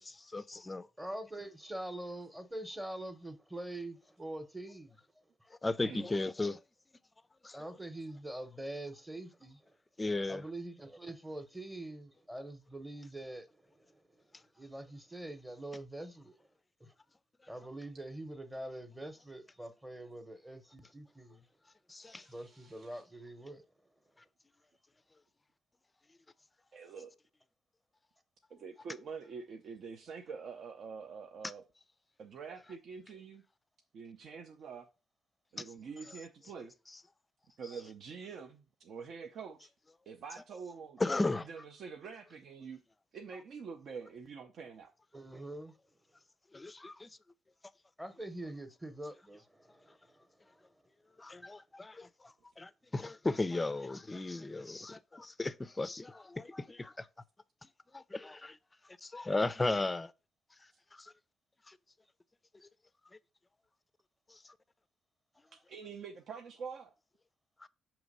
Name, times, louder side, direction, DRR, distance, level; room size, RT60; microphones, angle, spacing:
voice 1, 0.0-0.9 5.5-6.6 7.4-7.6 10.0-10.4 21.9-22.3 41.0-41.5 46.5-47.2 51.2-57.1 57.6-58.6 58.8-60.1 60.6-61.1 61.7-61.8 62.5-62.7 63.1-63.2 64.3-64.5 67.6-67.7, left 2 dB, 20° left, 0.4 m, -36 dB
voice 2, 1.0-5.0 7.5-9.6 10.3-14.0 14.5-16.4 16.8-16.9 17.5-21.5 22.3-23.6 45.1-45.8 48.0-50.3 50.5-50.6, right 1 dB, 10° right, 0.8 m, -44 dB
voice 3, 22.0-23.0 26.7-27.1 28.5-31.6 32.2-33.4 33.9-34.9 35.5-36.7 37.6-39.7 40.1-41.0 41.4-42.8 43.1-44.9 65.7-66.9, right 5 dB, 65° right, 0.5 m, -46 dB
6.1 x 3.0 x 5.3 m
cardioid pair, 90°, 0 cm